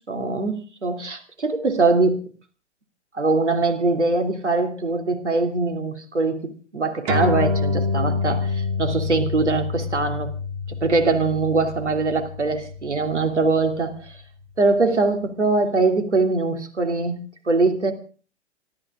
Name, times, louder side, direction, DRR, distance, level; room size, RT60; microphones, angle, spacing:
voice 1, 0.1-2.3 3.1-10.3 10.8-14.1 14.6-17.9, right 3 dB, 80° right, 5 dB, 2.9 m, -22 dB
sound 1, 7.1-13.9, left 3 dB, 40° right, 3.0 m, -27 dB
26.5 x 13.0 x 3.7 m, 0.38 s
figure-of-eight pair, 110°, 34 cm